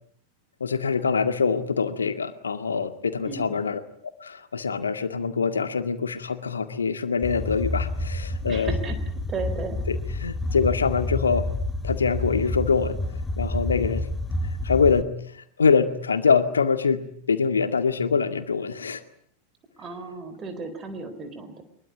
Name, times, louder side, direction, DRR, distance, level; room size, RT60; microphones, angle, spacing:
voice 1, 0.6-3.8 4.2-8.7 9.9-11.5 11.8-13.0 13.4-14.1 14.6-19.0, left 5 dB, 70° left, 9 dB, 2.1 m, -24 dB
voice 2, 3.2-3.6 8.4-9.0 9.3-9.8 19.8-21.6, right 4 dB, 25° right, 9 dB, 4.1 m, -35 dB
sound 1, 7.2-15.0, left 2 dB, 10° left, 2.1 m, -29 dB
23.5 x 22.0 x 9.3 m, 0.65 s
figure-of-eight pair, 90°, 0 cm